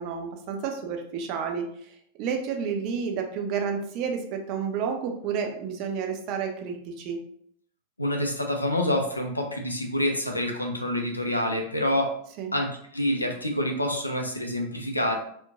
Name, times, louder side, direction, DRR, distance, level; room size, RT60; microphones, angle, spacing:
voice 1, 0.0-7.2 12.4-12.5, right 6 dB, 40° right, 3 dB, 0.4 m, -31 dB
voice 2, 8.0-12.1 12.5-12.7 12.9-15.2, left 1 dB, 85° left, 3 dB, 0.4 m, -27 dB
2.9 x 2.1 x 2.4 m, 0.66 s
figure-of-eight pair, 90°, 0 cm